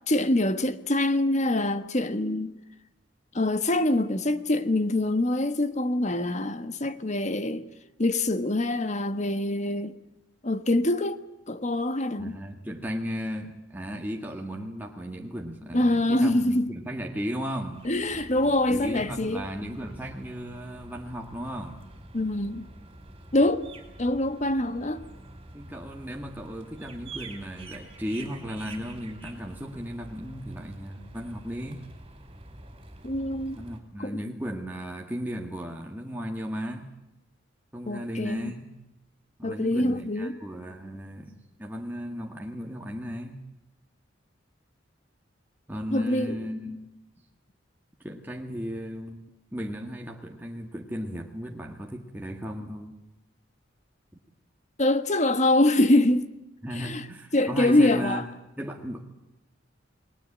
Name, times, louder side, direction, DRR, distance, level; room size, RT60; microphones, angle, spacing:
voice 1, 0.1-2.5 3.3-7.6 8.0-9.9 10.4-12.4 15.7-16.7 17.8-19.5 22.1-22.7 23.3-23.7 24.0-25.0 33.0-33.6 34.0-34.2 37.9-38.5 39.4-40.4 45.9-46.4 54.8-56.3 56.7-57.1 57.3-58.2, left 1 dB, 35° left, 1.3 m, -24 dB
voice 2, 12.2-17.8 18.4-21.8 25.5-31.8 33.6-36.9 37.7-38.7 39.4-43.4 45.7-46.8 48.0-49.2 49.5-53.0 56.6-58.3 58.6-59.0, equal, 10° right, 1.8 m, -35 dB
sound 1, 17.7-33.8, right 2 dB, 30° right, 4.7 m, -47 dB
29.0 x 20.5 x 8.8 m
head